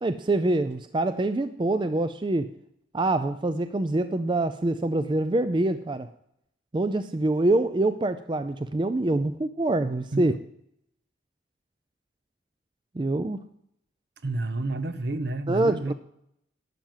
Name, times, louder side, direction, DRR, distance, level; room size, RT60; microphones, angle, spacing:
voice 1, 0.0-2.5 2.9-6.1 6.7-10.3 13.0-13.5 15.5-15.9, right 2 dB, 25° right, 10 dB, 0.4 m, -25 dB
voice 2, 14.2-15.9, right 2 dB, 60° right, 11 dB, 0.8 m, -30 dB
12.0 x 7.6 x 7.4 m, 0.74 s
head